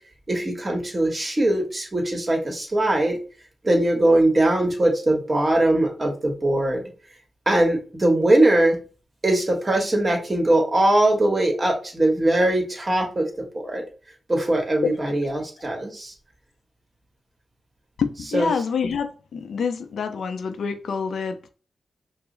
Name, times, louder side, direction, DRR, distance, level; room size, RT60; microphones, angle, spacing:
voice 1, 0.3-3.2 3.6-6.8 7.5-8.8 9.2-13.8 14.3-16.1 18.3-18.5, right 1 dB, 35° right, 1.4 m, -21 dB
voice 2, 18.0-21.5, left 6 dB, 90° left, 0.5 m, -27 dB
4.7 x 2.0 x 3.8 m
cardioid pair, 70°, 0 cm